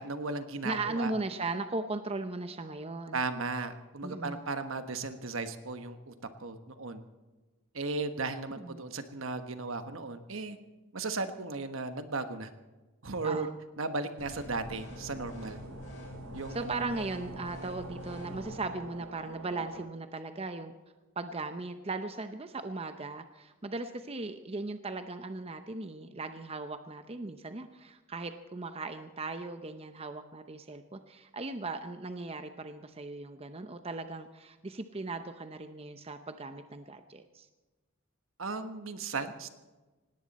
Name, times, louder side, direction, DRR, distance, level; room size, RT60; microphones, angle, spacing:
voice 1, 0.0-1.1 3.1-6.1 6.4-7.0 7.7-10.6 10.9-12.5 13.0-13.5 13.8-15.6 16.3-17.0 38.4-39.5, right 3 dB, 70° right, 9 dB, 1.3 m, -36 dB
voice 2, 0.6-3.2 4.0-4.5 8.6-8.8 13.2-13.6 16.5-20.7 21.2-37.5, right 3 dB, 30° right, 9 dB, 0.7 m, -38 dB
sound 1, 14.2-18.6, left 1 dB, 60° left, 7.0 m, -45 dB
sound 2, 14.6-19.9, right 3 dB, 85° right, 1.1 m, -48 dB
18.5 x 17.5 x 4.2 m, 1.2 s
head